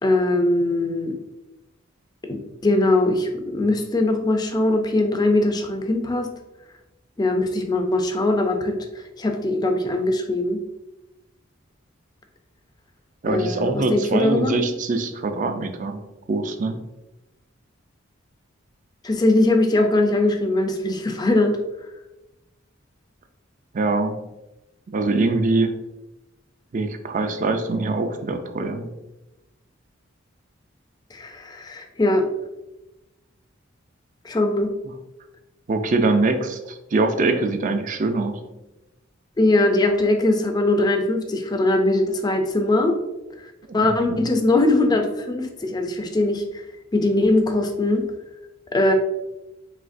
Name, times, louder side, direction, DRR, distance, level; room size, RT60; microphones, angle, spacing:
voice 1, 0.0-1.1 2.3-6.3 7.2-10.6 13.3-14.6 19.0-21.5 31.1-32.2 34.2-34.7 39.4-43.0 43.7-46.4 46.9-48.0 48.7-48.9, left 2 dB, 20° left, 4 dB, 0.4 m, -21 dB
voice 2, 13.2-16.0 16.3-16.8 23.7-24.2 24.9-25.7 26.7-28.9 35.7-38.4 43.7-44.2, right 3 dB, 40° right, 7 dB, 0.4 m, -23 dB
4.9 x 3.2 x 2.6 m, 0.98 s
head